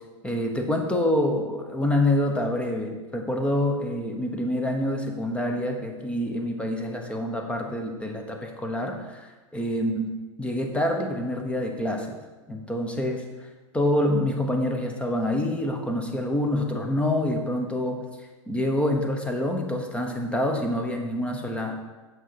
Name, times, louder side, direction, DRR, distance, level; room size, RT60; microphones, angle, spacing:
voice 1, 0.2-10.1 10.4-12.2 12.5-13.2 13.7-18.0 18.5-21.8, left 1 dB, 5° left, 3 dB, 1.0 m, -26 dB
7.8 x 6.3 x 4.6 m, 1.2 s
hypercardioid pair, 120°, 17 cm